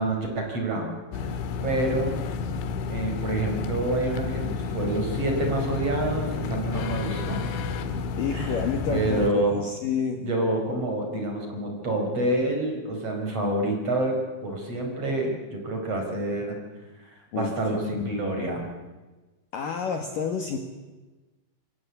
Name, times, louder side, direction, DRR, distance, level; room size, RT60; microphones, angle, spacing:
voice 1, 0.0-2.2 2.9-7.4 8.3-9.7 10.2-16.6 17.0-18.7, right 1 dB, 30° right, 2 dB, 5.5 m, -28 dB
sound 1, 1.1-9.3, left 5 dB, 75° left, 3.9 m, -30 dB
voice 2, 8.2-10.2 17.3-18.1 19.5-20.6, left 6 dB, 55° left, 4 dB, 2.8 m, -30 dB
26.0 x 25.0 x 8.4 m, 1.2 s
omnidirectional pair, 5.5 m